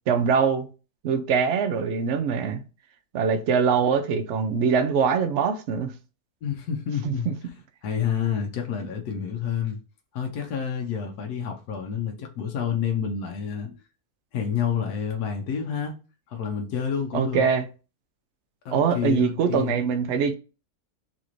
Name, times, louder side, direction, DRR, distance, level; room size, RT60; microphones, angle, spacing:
voice 1, 0.1-0.7 1.0-2.6 3.1-5.9 7.0-7.3 17.1-17.6 18.7-20.3, right 6 dB, 65° right, 0.7 m, -23 dB
voice 2, 6.4-7.3 7.8-9.8 10.1-13.8 14.3-15.9 16.3-17.5 18.6-19.8, left 8 dB, 85° left, 1.2 m, -29 dB
4.1 x 2.5 x 3.0 m
omnidirectional pair, 1.6 m